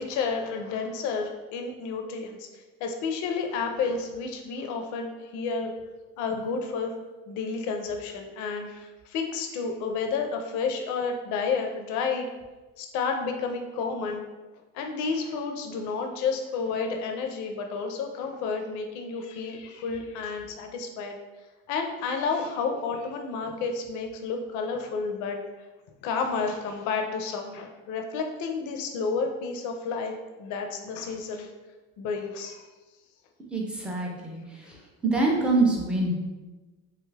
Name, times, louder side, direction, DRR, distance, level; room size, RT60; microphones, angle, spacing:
voice 1, 0.0-5.7 6.2-6.9 7.3-12.3 12.8-14.3 14.7-21.2 21.7-25.4 26.0-31.5 32.0-32.7, left 5 dB, 65° left, 4 dB, 0.5 m, -31 dB
voice 2, 33.5-34.8 35.0-36.1, right 3 dB, 5° right, -2 dB, 0.3 m, -25 dB
3.3 x 2.3 x 3.1 m, 1.2 s
cardioid pair, 160°, 31 cm